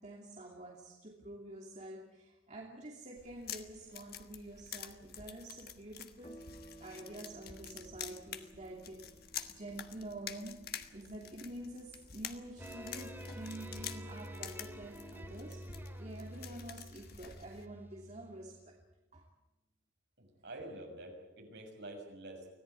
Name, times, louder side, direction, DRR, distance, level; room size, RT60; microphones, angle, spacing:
voice 1, 0.0-6.4 6.8-9.2 9.5-10.6 10.9-15.7 16.0-18.8 19.1-19.3, right 1 dB, 35° right, -2 dB, 2.8 m, -48 dB
sound 1, 3.2-17.7, left 9 dB, 50° left, 1.4 m, -48 dB
sound 2, 6.2-15.1, right 1 dB, 30° left, 2.5 m, -60 dB
Angus Lejeune Theme, 12.6-18.8, equal, 10° right, 2.5 m, -48 dB
voice 2, 20.2-22.5, right 1 dB, 55° right, 2 dB, 6.4 m, -47 dB
25.0 x 17.0 x 9.3 m, 0.99 s
head